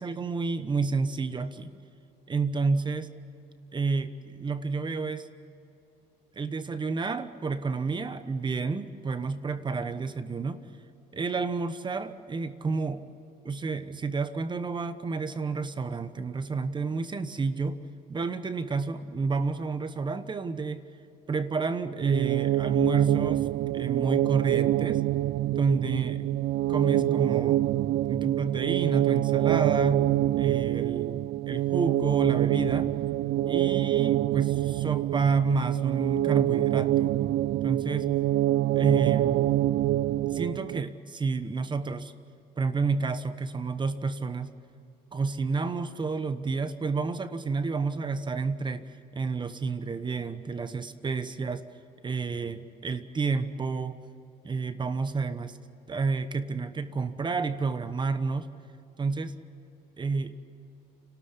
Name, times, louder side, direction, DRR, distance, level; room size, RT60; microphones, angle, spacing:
voice 1, 0.0-1.8 2.3-3.1 3.7-5.3 6.3-10.6 11.1-13.0 13.4-17.8 18.1-20.8 21.3-23.5 23.7-25.0 25.5-26.2 26.7-27.6 28.1-30.1 30.4-32.9 33.5-37.2 37.6-38.1 38.7-39.4 40.3-42.1 42.6-44.5 45.1-51.6 52.0-54.0 54.4-55.6 55.9-58.5 59.0-59.4 60.0-60.4, right 4 dB, 25° right, 12 dB, 1.1 m, -30 dB
sound 1, 22.0-40.8, right 14 dB, 65° right, 0.5 m, -25 dB
29.5 x 13.0 x 8.3 m, 2.8 s
cardioid pair, 110°, 17 cm